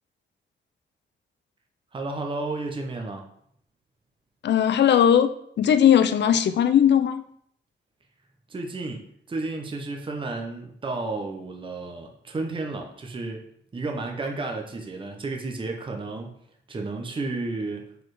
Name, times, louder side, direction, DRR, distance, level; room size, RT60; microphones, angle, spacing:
voice 1, 1.9-3.3 8.5-13.5 13.7-16.4 16.7-17.9, right 3 dB, 25° right, 2 dB, 0.8 m, -32 dB
voice 2, 4.4-5.3 5.6-7.2, left 9 dB, 60° left, 11 dB, 0.5 m, -18 dB
4.6 x 4.2 x 4.8 m, 0.68 s
cardioid pair, 120°, 20 cm